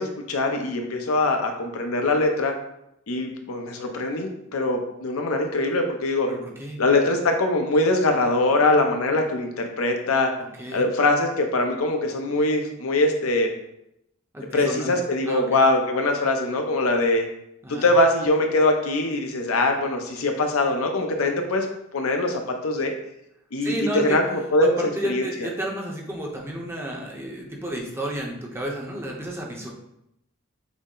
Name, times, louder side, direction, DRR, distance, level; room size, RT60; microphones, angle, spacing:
voice 1, 0.0-2.5 3.1-6.3 6.8-10.3 10.7-13.5 14.5-17.3 17.7-21.7 21.9-22.9 23.5-25.3, left 2 dB, 85° left, 4 dB, 0.7 m, -22 dB
voice 2, 6.3-6.8 10.6-10.8 14.3-14.9 15.3-15.6 17.6-17.9 23.6-24.2 24.6-29.7, right 1 dB, 10° right, -1 dB, 0.7 m, -31 dB
6.0 x 2.0 x 3.8 m, 0.81 s
head